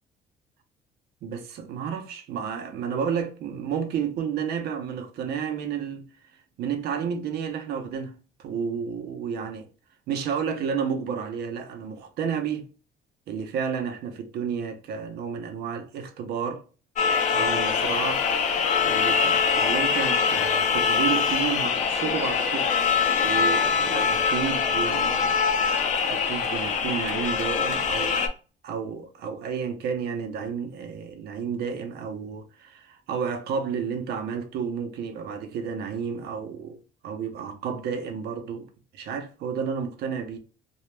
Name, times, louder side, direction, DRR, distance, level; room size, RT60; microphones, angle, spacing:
voice 1, 1.2-6.1 6.6-8.1 8.4-9.7 10.1-12.7 13.3-16.6 17.3-18.2 18.8-22.7 23.2-25.4 26.1-28.3 28.6-36.8 37.0-38.7 38.9-40.4, right 7 dB, 70° right, 0.6 m, -31 dB
sound 1, 17.0-28.3, left 6 dB, 45° left, 0.5 m, -23 dB
2.3 x 2.0 x 3.1 m
cardioid pair, 110°, 17 cm